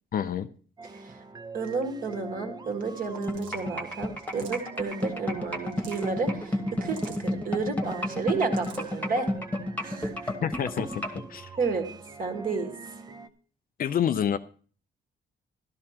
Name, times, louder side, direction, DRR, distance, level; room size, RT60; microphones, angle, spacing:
voice 1, 0.1-0.5 10.4-11.5 13.8-14.4, left 9 dB, 45° left, 12 dB, 0.4 m, -28 dB
sound 1, 0.8-13.3, right 4 dB, 20° right, 0.5 m, -44 dB
voice 2, 0.9-1.2 1.5-9.3 9.8-10.3 11.6-11.9 12.2-12.7, right 4 dB, 45° right, 4 dB, 1.6 m, -31 dB
sound 2, 3.1-3.6 4.2-4.8 5.5-6.1 6.8-7.3 8.2-8.9, right 5 dB, 75° right, 1.4 m, -48 dB
sound 3, 3.3-11.2, left 1 dB, 10° left, 1.3 m, -29 dB
12.5 x 12.5 x 2.9 m, 0.43 s
cardioid pair, 165°, 20 cm